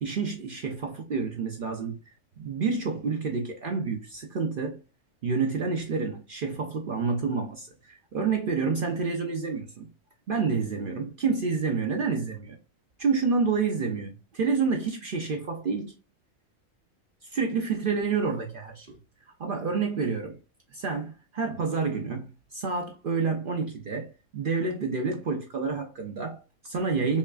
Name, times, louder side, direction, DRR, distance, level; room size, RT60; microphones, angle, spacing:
voice 1, 0.0-4.8 5.2-9.9 10.3-12.6 13.0-15.9 17.2-19.0 19.4-20.4 20.7-27.2, right 5 dB, 55° right, 0.6 m, -29 dB
5.2 x 2.4 x 2.3 m
omnidirectional pair, 1.4 m